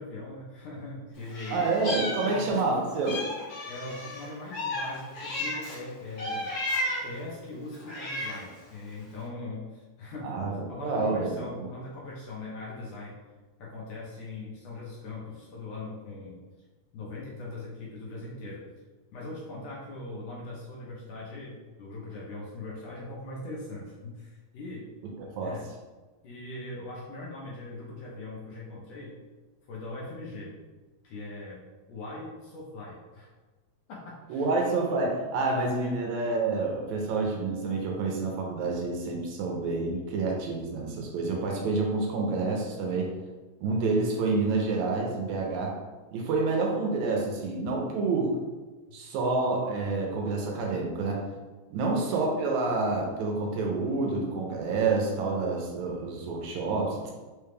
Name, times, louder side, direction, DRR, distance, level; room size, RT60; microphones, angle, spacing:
voice 1, 0.0-1.7 2.2-2.6 3.7-6.5 7.0-13.2 13.6-16.4 16.9-18.7 19.1-24.9 25.4-25.7 26.2-29.2 29.7-30.6 31.0-31.6 31.9-33.3 33.9-34.5 35.8-35.9 49.1-49.2 51.8-51.9, left 2 dB, 70° left, -5 dB, 1.7 m, -40 dB
Meow, 1.3-2.7 3.0-5.8 6.2-7.2 7.7-8.5, left 1 dB, 85° left, 0.9 m, -33 dB
voice 2, 1.5-3.2 10.2-11.7 25.2-25.5 34.3-43.1 43.6-45.8 46.1-48.4 48.9-51.2 51.7-57.1, right 3 dB, 85° right, 0 dB, 2.0 m, -28 dB
5.0 x 2.3 x 3.2 m, 1.3 s
omnidirectional pair, 3.4 m